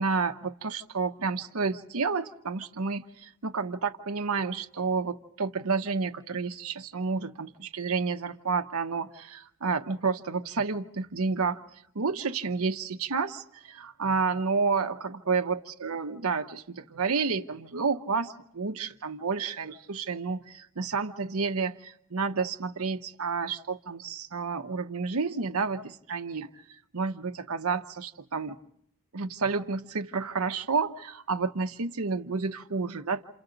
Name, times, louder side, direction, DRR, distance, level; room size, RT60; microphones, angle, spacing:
voice 1, 0.0-11.6 11.9-26.5 26.9-28.6 29.1-33.2, right 4 dB, 75° right, 6 dB, 0.9 m, -30 dB
28.5 x 28.0 x 3.9 m, 0.74 s
head